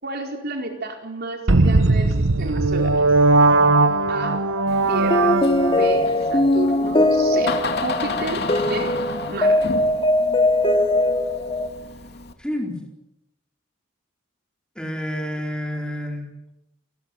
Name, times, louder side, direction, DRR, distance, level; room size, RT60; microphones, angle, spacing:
voice 1, 0.0-3.0 4.1-4.5 4.9-9.0 9.3-9.6, right 2 dB, 55° right, 3 dB, 4.5 m, -31 dB
sound 1, 1.5-5.9, right 3 dB, 85° right, 1.2 m, -18 dB
sound 2, 3.5-11.7, left 1 dB, 25° left, 2.4 m, -21 dB
Door, 4.7-12.3, left 3 dB, 55° left, 2.7 m, -32 dB
voice 2, 12.4-12.8 14.7-16.5, equal, 5° left, 2 dB, 4.4 m, -29 dB
28.5 x 21.5 x 7.9 m, 0.88 s
head